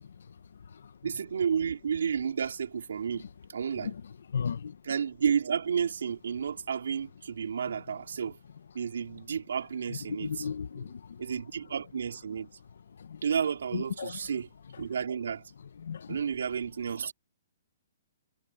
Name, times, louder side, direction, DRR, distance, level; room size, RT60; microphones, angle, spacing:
voice 1, 1.0-3.2 3.5-3.9 4.8-8.4 8.7-10.5 10.8-10.9 11.2-12.5 13.2-14.5 14.8-15.4 16.1-17.1, right 7 dB, 80° right, 3.0 m, -31 dB
voice 2, 4.3-4.7 10.2-11.0 13.1-13.2 13.7-14.1 15.8-16.1, left 7 dB, 80° left, 1.4 m, -34 dB
hypercardioid pair, 165°, 0 cm